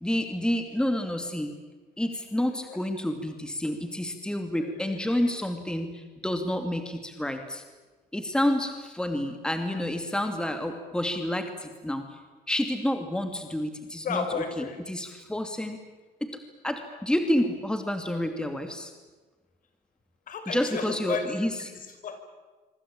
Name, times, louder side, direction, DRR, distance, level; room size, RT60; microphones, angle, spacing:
voice 1, 0.0-1.5 2.0-7.6 8.1-12.2 12.5-14.2 14.6-15.8 16.2-16.3 16.6-18.9 20.5-21.5, left 1 dB, 5° left, 6 dB, 2.6 m, -29 dB
voice 2, 2.5-2.8 4.5-5.3 14.0-14.8 20.3-22.2, left 5 dB, 55° left, 8 dB, 5.2 m, -34 dB
25.5 x 25.0 x 8.9 m, 1.3 s
cardioid pair, 110°, 17 cm